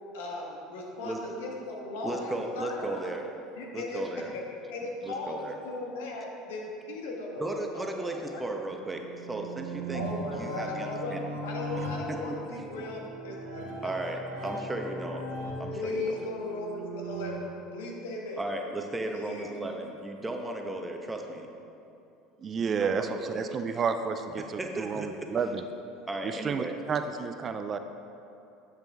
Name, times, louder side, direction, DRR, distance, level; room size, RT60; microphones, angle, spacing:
voice 1, 0.1-3.1 3.6-4.0 4.3-4.4 4.7-8.4 9.9-11.2 11.4-14.9 15.2-15.3 15.7-17.5 17.7-18.5 19.0-19.6, left 2 dB, 70° left, -1 dB, 1.5 m, -38 dB
voice 2, 2.0-3.2 3.7-4.3 5.0-5.5 7.4-10.0 10.3-11.2 11.8-12.6 13.8-15.2 15.6-15.9 18.4-21.5 22.7-23.8 24.4-25.3 26.1-26.7, right 2 dB, 15° right, 3 dB, 1.1 m, -36 dB
sound 1, 8.6-17.3, equal, 65° right, 1.9 m, -38 dB
voice 3, 22.4-25.6 26.2-27.8, right 5 dB, 35° right, 8 dB, 0.5 m, -31 dB
10.5 x 7.5 x 3.5 m, 2.8 s
hypercardioid pair, 70°, 0 cm